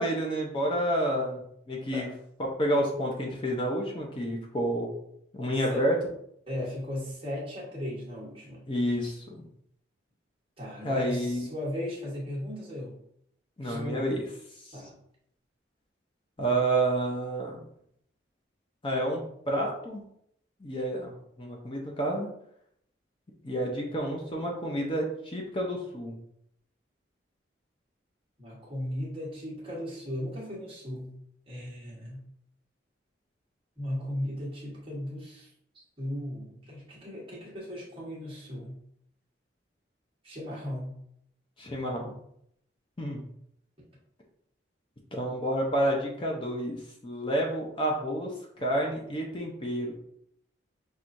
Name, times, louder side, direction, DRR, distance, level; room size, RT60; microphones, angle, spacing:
voice 1, 0.0-1.4 1.7-2.1 2.4-4.9 5.3-6.0 8.7-9.5 10.8-11.5 13.6-14.2 14.6-14.8 16.4-17.7 18.8-20.0 20.6-22.3 23.4-26.2 41.6-42.1 43.0-43.2 45.1-50.0, right 1 dB, 25° left, -1 dB, 0.6 m, -29 dB
voice 2, 6.5-8.6 10.6-12.9 13.6-14.1 14.7-14.9 28.4-31.1 31.5-32.2 33.8-35.5 35.7-38.8 40.2-40.9 49.1-49.2, left 1 dB, 30° right, -5 dB, 1.2 m, -36 dB
5.9 x 2.4 x 2.6 m, 0.72 s
head